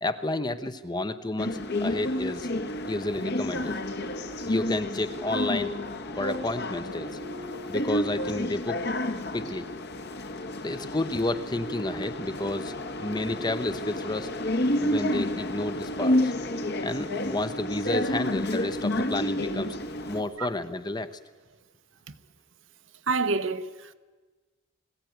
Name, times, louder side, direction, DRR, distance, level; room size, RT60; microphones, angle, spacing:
voice 1, 0.0-2.5 2.9-3.7 4.4-5.7 6.2-7.1 7.7-8.8 9.3-9.7 10.6-12.7 13.0-14.3 14.8-16.3 16.8-19.8 20.1-21.1, left 2 dB, 20° left, 0.8 m, -31 dB
sound 1, 1.4-20.2, left 1 dB, 55° left, 1.4 m, -30 dB
voice 2, 23.1-23.9, right 4 dB, 65° right, 1.0 m, -27 dB
20.5 x 15.0 x 9.4 m
head